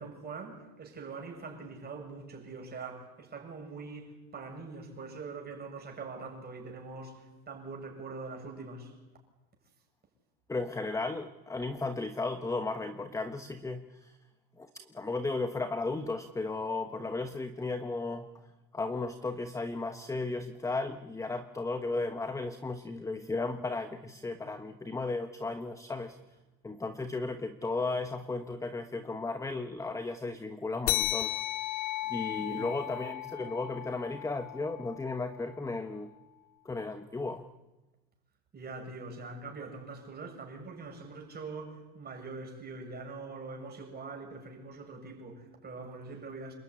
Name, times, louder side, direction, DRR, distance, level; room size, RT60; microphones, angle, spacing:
voice 1, 0.0-8.9 32.4-32.8 38.5-46.5, right 4 dB, 20° right, 7.5 m, -43 dB
voice 2, 10.5-14.2 14.6-18.3 18.7-26.2 26.6-31.3 32.1-36.1 36.6-37.5, left 3 dB, 5° left, 1.1 m, -35 dB
sound 1, 30.9-35.8, left 15 dB, 85° left, 2.2 m, -35 dB
27.5 x 21.5 x 9.9 m
cardioid pair, 150°, 43 cm